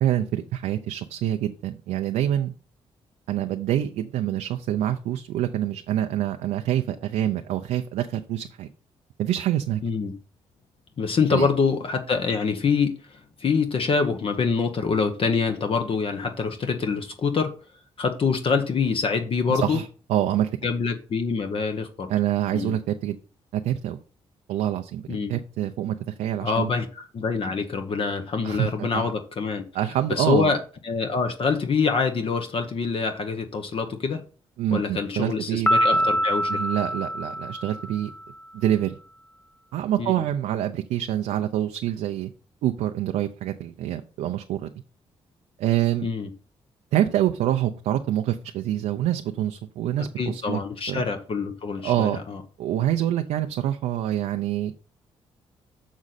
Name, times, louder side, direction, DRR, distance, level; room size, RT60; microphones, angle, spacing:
voice 1, 0.0-2.5 3.3-8.7 9.2-9.8 11.3-11.5 19.5-20.5 22.1-23.2 23.5-24.0 24.5-25.0 25.3-26.7 28.4-29.1 29.7-30.5 34.6-36.0 36.5-38.1 38.5-39.0 39.7-42.3 42.6-44.7 45.6-46.1 46.9-50.6 50.9-51.0 51.8-52.2 52.6-54.8, right 12 dB, 85° right, 6 dB, 0.5 m, -26 dB
voice 2, 9.8-10.1 11.0-17.5 18.0-19.8 20.6-22.1 22.5-22.7 25.1-25.3 26.4-29.6 30.1-30.6 30.8-34.2 34.7-36.5 40.0-40.1 46.0-46.3 50.0-52.4, left 5 dB, 50° left, 6 dB, 0.9 m, -25 dB
Piano, 35.7-38.2, equal, 15° left, 0.3 m, -24 dB
6.4 x 6.1 x 4.1 m, 0.38 s
cardioid pair, 70°, 12 cm